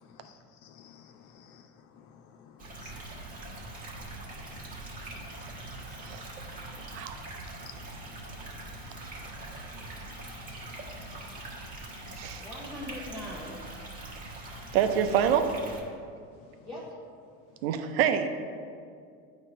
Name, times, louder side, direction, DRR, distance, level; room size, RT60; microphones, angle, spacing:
voice 1, 0.0-1.6 2.0-4.1 4.5-6.1 6.7-7.1 7.6-8.2 8.5-11.1 11.7-12.3, left 8 dB, 50° left, 8 dB, 0.4 m, -55 dB
sound 1, 2.6-15.8, right 2 dB, 30° right, 1.3 m, -43 dB
voice 2, 12.4-13.6 16.6-16.9, left 1 dB, 10° left, -8 dB, 1.0 m, -40 dB
voice 3, 14.7-15.5 17.6-18.3, right 9 dB, 75° right, 8 dB, 0.6 m, -26 dB
8.3 x 3.0 x 5.2 m, 2.3 s
supercardioid pair, 120°, 30 cm